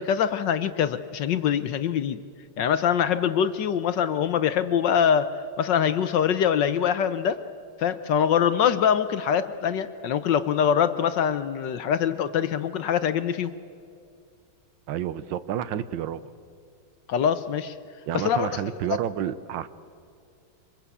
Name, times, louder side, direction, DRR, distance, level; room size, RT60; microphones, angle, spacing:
voice 1, 0.0-2.2 2.6-7.4 7.8-13.5 17.1-17.7 18.1-18.6, left 8 dB, 65° left, 12 dB, 1.3 m, -24 dB
voice 2, 14.9-16.2 18.1-19.7, right 10 dB, 65° right, 14 dB, 1.4 m, -30 dB
25.5 x 21.5 x 8.3 m, 2.4 s
omnidirectional pair, 2.4 m